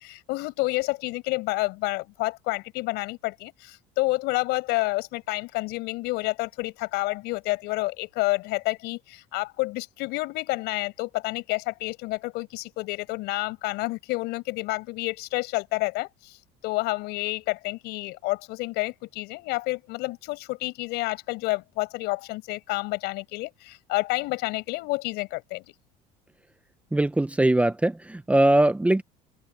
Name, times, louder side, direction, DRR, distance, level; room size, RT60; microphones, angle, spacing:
voice 1, 0.0-16.4 16.6-25.6, left 22 dB, 70° left, 6.2 m, -29 dB
voice 2, 26.9-29.0, right 1 dB, 5° right, 0.9 m, -21 dB
open air
supercardioid pair, 105°, 18 cm